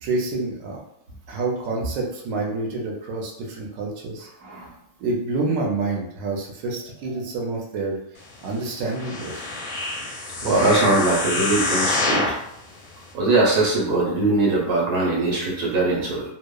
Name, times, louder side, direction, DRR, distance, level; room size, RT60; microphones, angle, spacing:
voice 1, 0.0-0.8 1.3-4.3 5.0-8.0 8.4-9.5, right 3 dB, 65° right, -1 dB, 0.9 m, -28 dB
sound 1, 8.9-12.4 13.0-13.1, left 2 dB, 70° left, 0.9 m, -26 dB
voice 2, 10.4-12.3 13.1-16.2, right 2 dB, 85° right, -3 dB, 1.3 m, -21 dB
2.9 x 2.0 x 2.2 m, 0.76 s
omnidirectional pair, 1.6 m